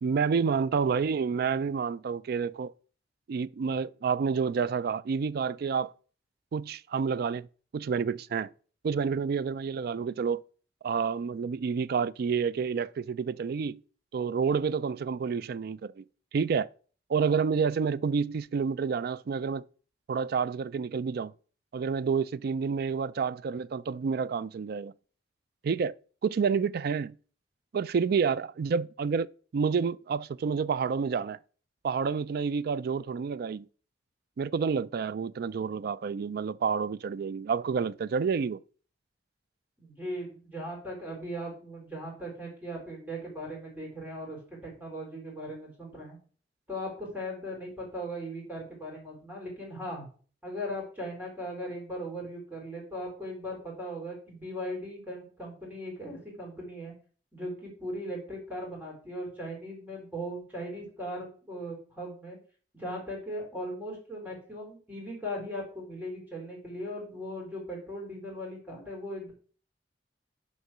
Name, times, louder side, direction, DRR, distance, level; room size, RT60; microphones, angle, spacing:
voice 1, 0.0-2.7 3.3-5.9 6.5-7.5 7.7-8.5 8.8-10.4 10.8-13.8 14.1-16.0 16.3-16.7 17.1-19.6 20.1-21.3 21.7-24.9 25.6-25.9 26.2-27.1 27.7-29.3 29.5-31.4 31.8-33.7 34.4-38.6, right 5 dB, 60° right, 0.3 m, -29 dB
voice 2, 39.8-46.2 46.7-50.1 50.4-56.9 57.3-62.4 62.7-69.3, equal, 10° right, 4.0 m, -38 dB
6.5 x 5.4 x 6.0 m
head